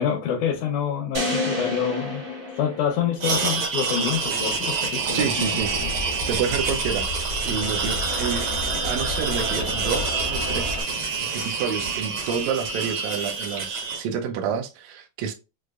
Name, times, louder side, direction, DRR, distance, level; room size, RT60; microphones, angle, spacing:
voice 1, 0.0-2.2 2.5-5.9, left 8 dB, 80° left, 2.2 m, -27 dB
sound 1, 1.1-3.4, left 2 dB, 40° right, 1.0 m, -29 dB
sound 2, 3.2-14.0, right 4 dB, 60° right, 1.5 m, -27 dB
voice 2, 5.1-5.7 6.3-7.1 7.4-8.5 8.8-15.3, right 7 dB, 75° right, 1.8 m, -29 dB
sound 3, 5.6-10.8, left 2 dB, 55° left, 0.6 m, -32 dB
6.3 x 2.5 x 2.4 m
omnidirectional pair, 3.6 m